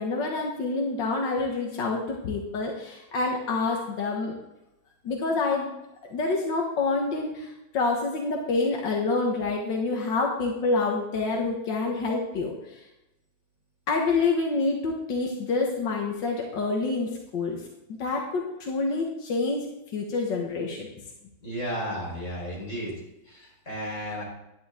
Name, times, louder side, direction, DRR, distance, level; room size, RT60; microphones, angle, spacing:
voice 1, 0.0-4.3 5.0-5.7 6.1-12.8 13.9-17.6 18.0-19.7 19.9-20.9, left 3 dB, 90° left, 0 dB, 2.1 m, -27 dB
voice 2, 21.4-22.9 23.3-24.2, equal, 45° left, -4 dB, 4.8 m, -33 dB
11.0 x 10.5 x 3.7 m, 0.92 s
omnidirectional pair, 1.9 m